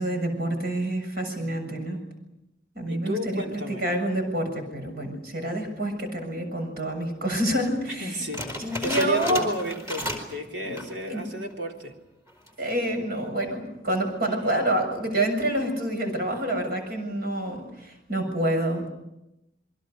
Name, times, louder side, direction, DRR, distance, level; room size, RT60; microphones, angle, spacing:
voice 1, 0.0-2.0 2.8-8.1 8.6-9.5 10.6-10.8 11.1-11.3 12.6-18.9, right 1 dB, 55° right, 4 dB, 7.1 m, -27 dB
voice 2, 1.4-2.0 2.9-3.9 7.9-8.5 8.8-11.9, left 1 dB, 80° right, 1 dB, 3.7 m, -33 dB
sound 1, 8.3-10.4 10.7-11.0 11.5-11.6 12.3-12.7, left 1 dB, 15° right, 4.6 m, -33 dB
28.0 x 23.5 x 6.6 m, 0.91 s
head